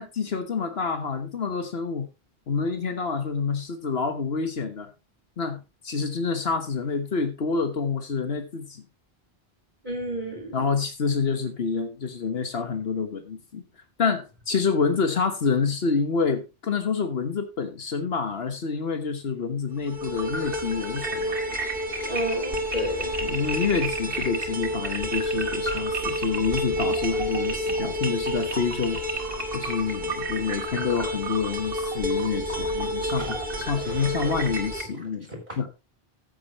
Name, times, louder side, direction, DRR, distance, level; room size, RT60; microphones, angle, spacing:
voice 1, 0.0-2.1 2.5-4.9 5.4-8.8 10.5-13.6 14.0-21.4 23.2-29.0 29.5-35.3 35.6-35.7, left 5 dB, 75° left, 8 dB, 1.5 m, -27 dB
voice 2, 9.8-10.6 22.0-23.1 33.2-33.3 33.9-34.3, equal, 45° right, 2 dB, 3.3 m, -31 dB
sound 1, 19.8-34.8, right 1 dB, 60° right, 2.4 m, -29 dB
14.5 x 7.9 x 3.1 m, 0.26 s
omnidirectional pair, 1.0 m